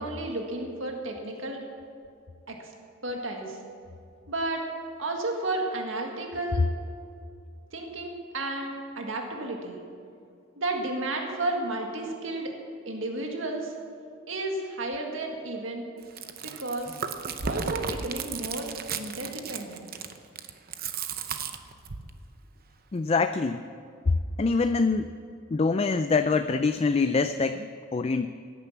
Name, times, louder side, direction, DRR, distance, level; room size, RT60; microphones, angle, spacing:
voice 1, 0.0-1.6 2.5-2.7 3.0-3.6 4.3-4.6 5.0-6.7 7.7-9.8 10.6-12.5 12.9-13.7 14.3-15.9 16.6-17.0 17.4-19.9, right 2 dB, 75° right, 1 dB, 1.9 m, -32 dB
Chewing mastication, 16.0-22.1, right 6 dB, 50° right, 0.8 m, -34 dB
voice 2, 22.9-23.7 24.4-25.1 25.5-28.3, left 4 dB, 30° left, 9 dB, 0.4 m, -25 dB
17.0 x 9.9 x 7.3 m, 2.4 s
head